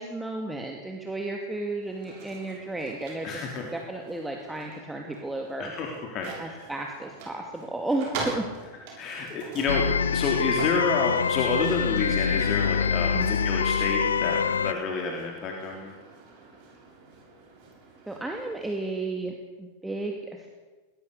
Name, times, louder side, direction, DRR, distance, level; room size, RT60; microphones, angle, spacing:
voice 1, 0.0-5.7 6.4-8.4 13.1-13.3 18.1-19.3 19.6-20.5, right 2 dB, 5° right, 2 dB, 2.4 m, -33 dB
sound 1, 1.7-18.9, right 3 dB, 50° right, 7.1 m, -44 dB
voice 2, 3.2-3.6 5.6-6.6 9.0-15.9, left 4 dB, 35° left, 1 dB, 3.5 m, -29 dB
sound 2, 9.7-14.7, left 6 dB, 70° left, 0.7 m, -25 dB
22.0 x 20.0 x 6.8 m, 1.3 s
figure-of-eight pair, 90°, 0 cm